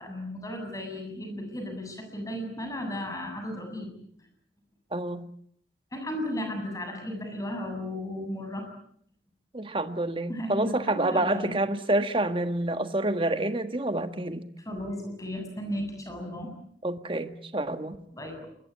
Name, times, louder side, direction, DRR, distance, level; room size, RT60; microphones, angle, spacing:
voice 1, 0.0-3.9 5.9-8.6 10.3-11.6 14.7-16.5 18.1-18.5, left 1 dB, 20° left, 4 dB, 7.7 m, -35 dB
voice 2, 4.9-5.3 9.5-14.5 16.8-18.0, right 1 dB, 30° right, 9 dB, 1.5 m, -28 dB
28.0 x 22.5 x 8.4 m, 0.66 s
head